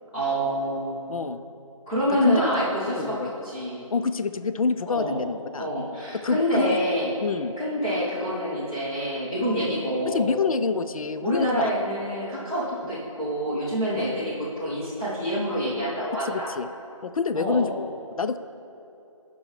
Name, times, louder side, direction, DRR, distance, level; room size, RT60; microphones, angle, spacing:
voice 1, 0.1-1.1 1.9-3.9 4.9-5.2 5.6-7.1 7.6-10.4 11.2-16.5 17.3-17.6, equal, 10° left, -10 dB, 1.0 m, -27 dB
voice 2, 1.1-1.4 2.2-2.4 2.9-3.3 3.9-5.7 6.2-6.8 7.2-7.5 10.1-11.7 13.9-14.1 16.2-16.7 17.0-17.9 18.2-18.4, left 4 dB, 85° left, 12 dB, 0.5 m, -26 dB
15.5 x 5.4 x 3.3 m, 2.9 s
figure-of-eight pair, 175°, 18 cm